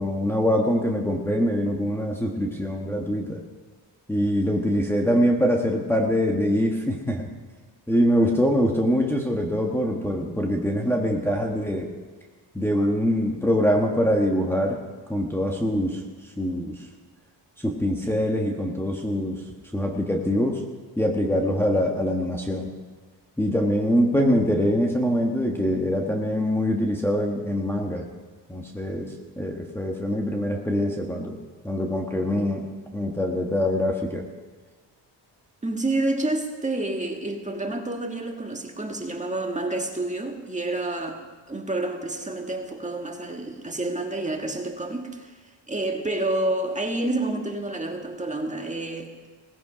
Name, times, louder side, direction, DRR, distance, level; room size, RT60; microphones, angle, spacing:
voice 1, 0.0-3.4 4.1-7.3 7.9-11.9 12.5-14.8 15.1-16.0 16.4-16.9 17.6-19.4 19.7-20.6 21.0-22.7 23.4-28.1 28.5-31.4 31.6-32.6 32.9-34.3, equal, 5° left, -1 dB, 1.4 m, -24 dB
voice 2, 35.6-41.2 41.5-45.3 45.7-49.1, right 2 dB, 15° right, 3 dB, 1.7 m, -29 dB
18.0 x 15.5 x 5.1 m, 1.4 s
cardioid pair, 130°, 43 cm